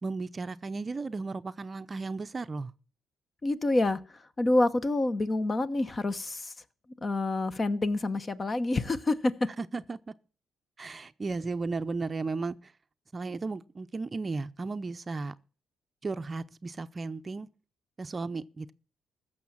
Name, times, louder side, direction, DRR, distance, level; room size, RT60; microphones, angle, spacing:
voice 1, 0.0-2.7 9.6-10.1 10.8-12.7 13.1-15.3 16.0-17.5 18.0-18.7, right 3 dB, 30° right, 0.6 m, -35 dB
voice 2, 3.4-4.0 4.4-6.5 7.0-9.3, left 2 dB, 30° left, 1.0 m, -27 dB
15.0 x 6.6 x 7.2 m
cardioid pair, 90°, 0 cm